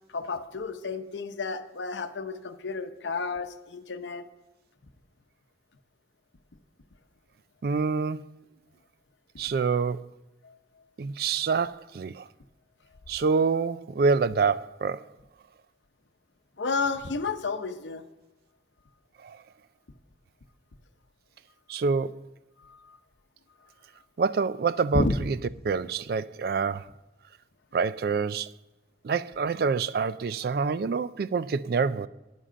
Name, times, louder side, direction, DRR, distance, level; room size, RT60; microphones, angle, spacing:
voice 1, 0.1-4.2 10.4-10.5 16.6-18.0 22.6-23.0 24.9-25.1, left 3 dB, 80° left, 0.7 m, -31 dB
voice 2, 7.6-8.3 9.4-10.1 11.0-12.3 13.1-15.1 19.2-19.4 21.7-22.2 24.2-25.4 25.6-26.9 27.7-28.5 29.0-32.1, right 5 dB, 55° right, 0.3 m, -26 dB
9.9 x 7.5 x 5.1 m
head